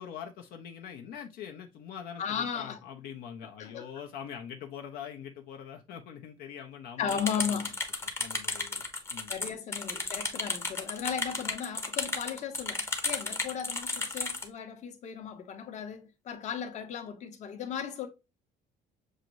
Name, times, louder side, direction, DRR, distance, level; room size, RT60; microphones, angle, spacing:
voice 1, 0.0-7.2 7.5-7.6 8.2-9.3, left 8 dB, 75° left, 0.7 m, -43 dB
voice 2, 2.2-2.8 3.6-3.9 7.0-7.8 9.3-18.1, left 7 dB, 45° left, 0.9 m, -36 dB
sound 1, 7.1-14.5, left 3 dB, 15° left, 0.7 m, -33 dB
6.5 x 2.5 x 3.0 m
cardioid pair, 155°, 16 cm